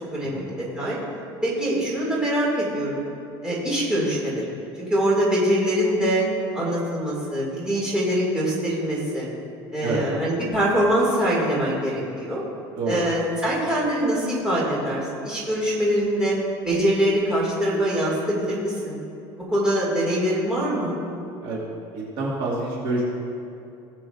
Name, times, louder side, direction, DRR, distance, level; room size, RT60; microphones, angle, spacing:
voice 1, 0.1-1.0 1.4-3.0 3.4-4.4 4.9-6.2 6.5-9.3 9.7-12.4 12.9-16.4 16.6-19.0 19.3-21.0, equal, 5° right, -7 dB, 2.3 m, -23 dB
voice 2, 21.9-23.1, right 2 dB, 45° right, -4 dB, 1.9 m, -27 dB
18.5 x 7.6 x 2.5 m, 2.7 s
cardioid pair, 175°, 11 cm